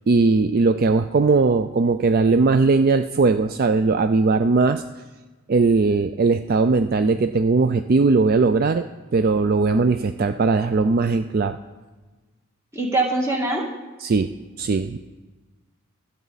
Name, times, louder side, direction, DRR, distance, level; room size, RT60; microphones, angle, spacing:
voice 1, 0.1-4.8 5.5-8.9 9.1-11.6 14.0-14.3 14.6-15.0, right 4 dB, 40° right, 10 dB, 0.4 m, -19 dB
voice 2, 12.7-13.7, right 2 dB, 15° right, 0 dB, 1.8 m, -22 dB
23.0 x 8.2 x 4.1 m, 1.3 s
head